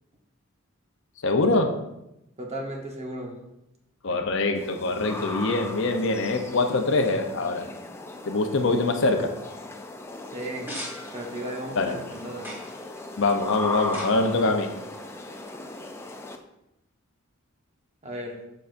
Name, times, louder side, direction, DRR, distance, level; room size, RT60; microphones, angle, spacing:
voice 1, 1.2-1.8 4.0-7.7 8.2-9.4 11.8-12.0 13.2-14.7, left 3 dB, 60° left, 6 dB, 0.6 m, -24 dB
voice 2, 2.4-3.3 10.3-10.7 11.1-12.5 18.0-18.4, right 1 dB, 30° right, 1 dB, 1.0 m, -35 dB
sound 1, 4.5-16.4, left 2 dB, 10° left, 0.4 m, -38 dB
sound 2, 10.4-15.9, equal, 10° right, 1.6 m, -43 dB
6.9 x 6.2 x 2.5 m, 0.87 s
head